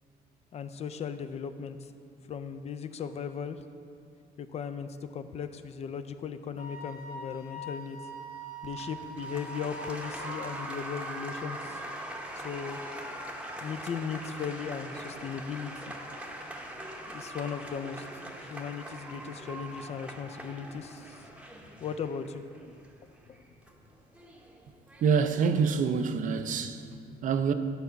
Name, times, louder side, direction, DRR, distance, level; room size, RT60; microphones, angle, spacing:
voice 1, 0.5-1.8 2.3-3.6 4.4-8.0 8.6-11.8 12.4-12.8 13.6-15.9 17.1-18.1 18.4-21.2 21.8-22.4, left 6 dB, 40° left, 0.4 m, -37 dB
Wind instrument woodwind instrument, 6.6-10.6, right 1 dB, 60° left, 1.1 m, -43 dB
Applause, 8.6-25.8, right 1 dB, 5° right, 0.8 m, -42 dB
voice 2, 25.0-27.5, right 6 dB, 50° right, 0.5 m, -27 dB
9.2 x 4.1 x 5.6 m
cardioid pair, 110°, 17 cm